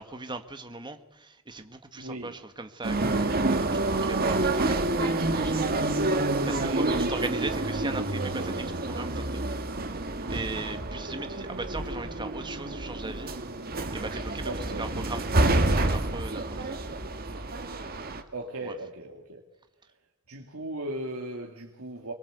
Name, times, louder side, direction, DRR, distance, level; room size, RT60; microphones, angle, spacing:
voice 1, 0.0-9.6 10.3-13.3 13.9-16.7 18.6-18.7, right 2 dB, 20° right, 8 dB, 1.6 m, -39 dB
voice 2, 2.0-2.3 6.6-7.2 14.5-14.8 18.3-19.4 20.3-22.1, right 1 dB, 75° right, 1 dB, 2.4 m, -37 dB
sound 1, 2.8-18.2, right 2 dB, 45° right, 1.9 m, -28 dB
24.5 x 21.0 x 8.1 m, 1.1 s
head